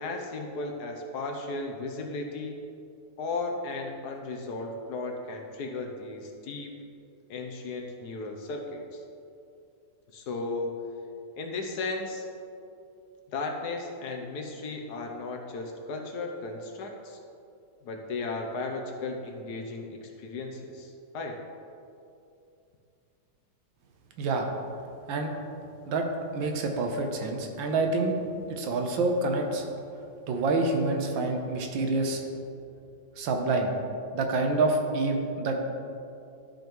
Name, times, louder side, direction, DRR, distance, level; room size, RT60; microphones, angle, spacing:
voice 1, 0.0-2.6 3.2-6.7 7.3-9.0 10.1-10.8 11.4-12.3 13.3-17.2 17.8-21.4, left 3 dB, 70° left, 3 dB, 1.2 m, -35 dB
voice 2, 26.3-28.1 28.5-29.6 30.3-32.2 33.2-33.7 34.1-35.6, right 3 dB, 90° right, 3 dB, 1.6 m, -27 dB
12.0 x 5.2 x 3.0 m, 2.6 s
omnidirectional pair, 2.0 m